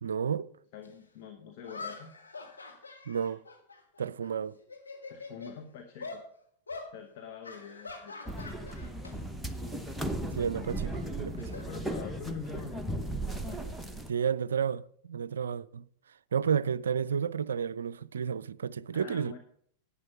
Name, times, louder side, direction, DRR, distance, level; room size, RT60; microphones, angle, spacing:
voice 1, 0.0-0.5 3.1-3.4 4.0-4.6 10.3-11.5 14.1-15.8 16.3-19.4, right 7 dB, 70° right, 0.4 m, -31 dB
voice 2, 0.7-2.1 5.1-6.2 6.9-9.0 11.5-13.6 18.9-19.4, left 7 dB, 50° left, 1.2 m, -46 dB
sound 1, 0.8-0.9 1.6-4.3 4.6-5.6 6.0-6.2 6.7-6.9 7.4-9.1 9.4-9.7 10.9-12.4, left 3 dB, 75° left, 2.0 m, -44 dB
sound 2, 8.3-14.1, right 1 dB, ahead, 0.9 m, -36 dB
11.0 x 8.7 x 5.8 m
figure-of-eight pair, 90°, 0 cm